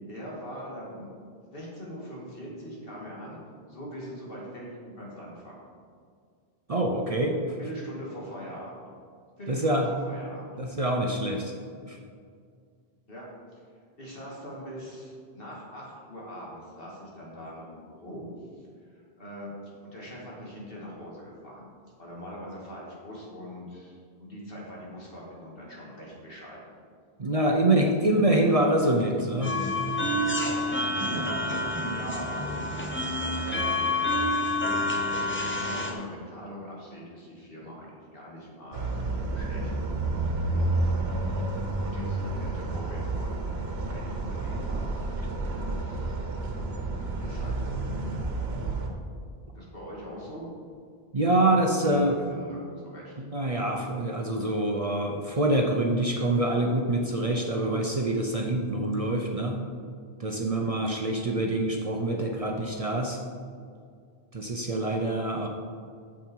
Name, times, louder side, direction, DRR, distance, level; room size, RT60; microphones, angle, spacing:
voice 1, 0.1-1.1 1.4-3.4 3.7-5.6 7.6-8.8 9.4-10.5 13.1-13.3 14.0-18.3 18.6-19.6 19.9-21.7 22.0-26.6 27.5-27.7 28.4-28.5 28.8-28.9 31.7-33.1 33.4-33.8 35.6-39.7 40.5-40.7 41.8-43.4 43.9-45.0 45.4-45.7 47.2-47.8 49.5-50.5 51.3-53.3, equal, 60° left, -5 dB, 2.6 m, -42 dB
voice 2, 6.7-7.6 9.5-9.9 10.6-11.5 11.9-12.0 27.2-29.6 51.1-52.2 53.2-59.6 60.2-63.2 64.3-65.5, right 1 dB, 40° right, 2 dB, 0.7 m, -25 dB
sound 1, 29.4-35.9, left 1 dB, 10° left, 0.9 m, -28 dB
sound 2, 38.7-48.9, right 2 dB, 80° right, 1.3 m, -30 dB
9.1 x 7.4 x 4.6 m, 2.1 s
omnidirectional pair, 1.0 m